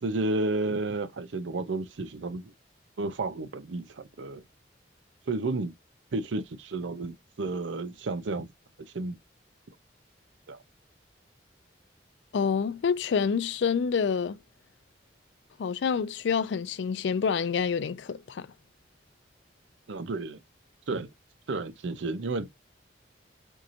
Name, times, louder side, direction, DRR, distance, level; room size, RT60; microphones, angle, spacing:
voice 1, 0.0-2.5 3.0-4.4 5.3-5.7 6.1-8.5 8.9-9.2 10.5-10.6 19.9-20.4 20.9-21.1 21.5-22.5, right 2 dB, 80° right, 0.6 m, -31 dB
voice 2, 12.3-14.4 15.6-18.5, left 6 dB, 70° left, 0.4 m, -27 dB
4.6 x 2.5 x 2.7 m
head